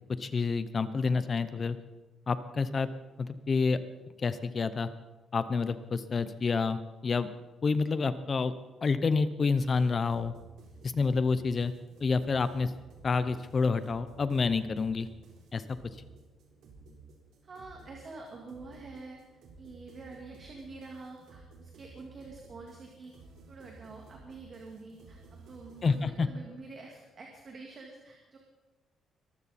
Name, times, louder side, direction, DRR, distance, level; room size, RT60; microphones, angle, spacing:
voice 1, 0.2-1.8 2.3-2.9 3.2-3.8 4.2-4.9 5.3-7.3 7.6-8.5 8.8-10.3 10.8-11.7 12.0-12.7 13.0-15.1 15.5-15.8 25.8-26.3, left 4 dB, 25° left, 13 dB, 0.6 m, -28 dB
sound 1, 9.6-26.1, right 4 dB, 70° right, 3.9 m, -54 dB
voice 2, 17.4-19.2 19.6-23.1 23.5-28.4, right 3 dB, 30° right, 0 dB, 2.0 m, -47 dB
23.0 x 14.5 x 4.2 m, 1.2 s
cardioid pair, 180°, 0 cm